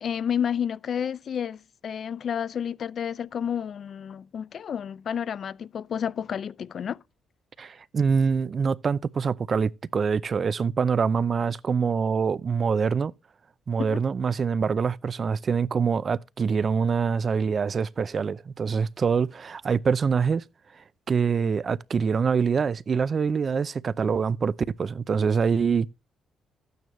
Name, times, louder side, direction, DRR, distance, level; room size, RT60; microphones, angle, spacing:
voice 1, 0.0-7.0 13.8-14.0, left 8 dB, 55° left, 0.4 m, -30 dB
voice 2, 7.6-13.1 13.7-20.4 21.1-24.5 24.8-25.9, right 6 dB, 45° right, 0.5 m, -25 dB
12.0 x 9.4 x 3.1 m
cardioid pair, 90°, 0 cm